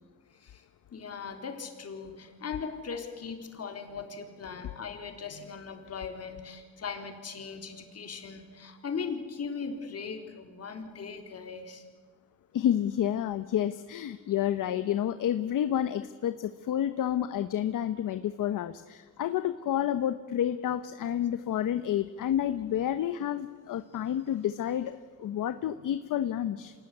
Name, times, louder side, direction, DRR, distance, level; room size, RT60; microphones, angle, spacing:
voice 1, 0.9-11.8 21.0-21.1, left 5 dB, 45° left, 5 dB, 4.0 m, -39 dB
voice 2, 12.5-26.7, left 10 dB, 65° left, 11 dB, 1.0 m, -30 dB
27.0 x 18.5 x 9.9 m, 1.5 s
cardioid pair, 105°, 34 cm